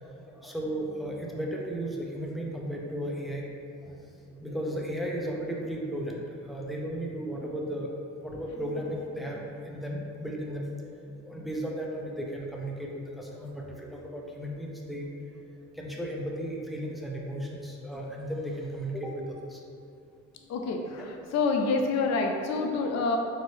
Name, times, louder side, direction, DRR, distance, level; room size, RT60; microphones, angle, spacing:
voice 1, 0.0-3.4 3.8-4.0 4.3-6.2 6.5-7.9 8.2-10.9 11.2-15.1 15.7-19.2 19.5-19.6 21.0-21.1, right 1 dB, ahead, -2 dB, 0.6 m, -35 dB
voice 2, 20.5-23.2, left 3 dB, 60° left, 2 dB, 0.5 m, -27 dB
4.3 x 2.6 x 3.3 m, 2.5 s
cardioid pair, 90°, 30 cm